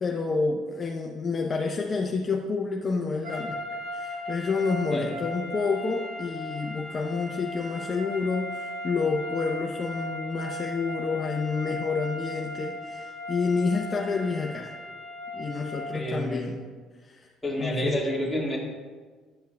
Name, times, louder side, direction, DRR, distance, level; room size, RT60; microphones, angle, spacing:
voice 1, 0.0-3.6 3.9-14.7 15.3-16.6 17.0-17.3 17.6-18.0, left 4 dB, 35° left, 0 dB, 0.6 m, -29 dB
sound 1, 3.2-16.1, left 1 dB, 65° right, 1.8 m, -37 dB
voice 2, 15.9-16.5 17.4-18.6, equal, 5° left, -4 dB, 1.8 m, -29 dB
11.5 x 5.6 x 2.2 m, 1.5 s
cardioid pair, 105°, 0 cm